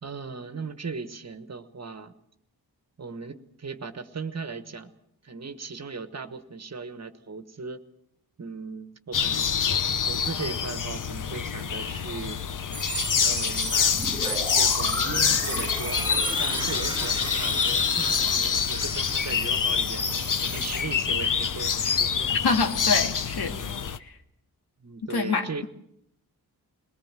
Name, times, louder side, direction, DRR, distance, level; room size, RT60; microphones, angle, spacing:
voice 1, 0.0-2.1 3.0-4.9 5.2-7.8 8.4-9.5 10.1-12.4 13.2-16.0 16.4-22.4 24.8-25.6, right 4 dB, 40° right, 11 dB, 1.4 m, -38 dB
sound 1, 9.1-24.0, left 7 dB, 55° left, 0.9 m, -26 dB
sound 2, 12.7-20.8, equal, 10° left, 2.3 m, -33 dB
Toilet flush, 15.0-19.3, right 2 dB, 10° right, 0.8 m, -39 dB
voice 2, 22.3-23.6 24.0-24.2 25.1-25.7, left 4 dB, 70° left, 5 dB, 2.3 m, -26 dB
21.5 x 18.5 x 7.5 m, 0.75 s
wide cardioid pair, 90°, 39 cm